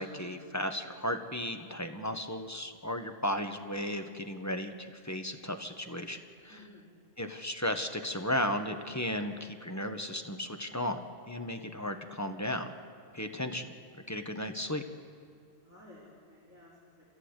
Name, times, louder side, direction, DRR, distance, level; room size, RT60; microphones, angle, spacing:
voice 1, 0.0-6.6 7.2-11.0 11.3-12.7 13.1-13.7 14.1-14.8, left 1 dB, 15° left, 5 dB, 1.1 m, -35 dB
voice 2, 6.5-6.9 15.6-17.1, left 1 dB, 15° right, -10 dB, 4.6 m, -55 dB
28.0 x 15.5 x 8.1 m, 2.3 s
omnidirectional pair, 1.3 m